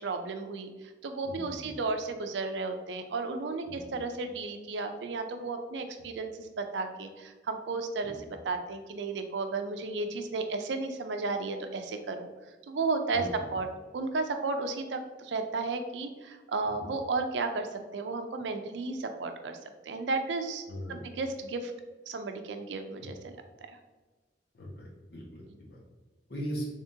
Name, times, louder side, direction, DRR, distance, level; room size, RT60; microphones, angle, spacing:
voice 1, 0.0-8.1 8.4-12.3 12.7-13.2 13.5-13.7 13.9-19.6 19.8-20.6 20.9-21.7 22.1-23.3 23.7-23.8, right 3 dB, 80° right, 6 dB, 0.4 m, -33 dB
voice 2, 1.2-1.7 3.7-3.9 8.0-8.1 13.1-13.3 20.7-21.0 23.0-23.1 24.5-25.4 25.7-25.8 26.3-26.7, equal, 60° left, -3 dB, 1.1 m, -39 dB
3.6 x 3.5 x 2.7 m, 1.3 s
head